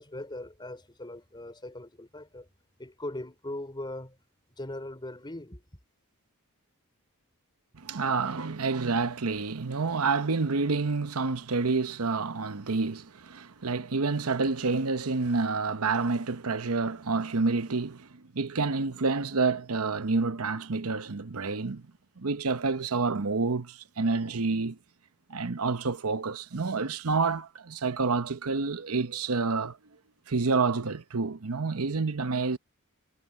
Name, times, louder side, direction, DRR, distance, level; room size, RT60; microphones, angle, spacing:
voice 1, 0.0-2.5 2.8-4.2 4.5-5.6, left 1 dB, 20° left, 3.9 m, -40 dB
voice 2, 7.7-21.9 22.2-24.8 25.3-29.8 30.3-32.6, right 4 dB, 75° right, 0.9 m, -28 dB
head